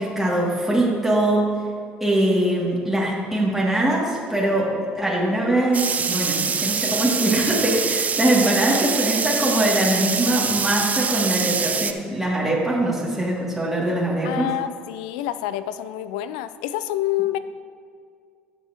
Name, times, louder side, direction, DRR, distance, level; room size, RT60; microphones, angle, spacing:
voice 1, 0.0-1.5 2.0-14.5, right 1 dB, 5° right, -6 dB, 2.4 m, -22 dB
sound 1, 5.7-11.9, right 6 dB, 35° right, 0.6 m, -24 dB
voice 2, 14.2-17.4, left 13 dB, 85° left, 13 dB, 0.4 m, -27 dB
15.5 x 5.7 x 2.9 m, 2.1 s
hypercardioid pair, 70°, 4 cm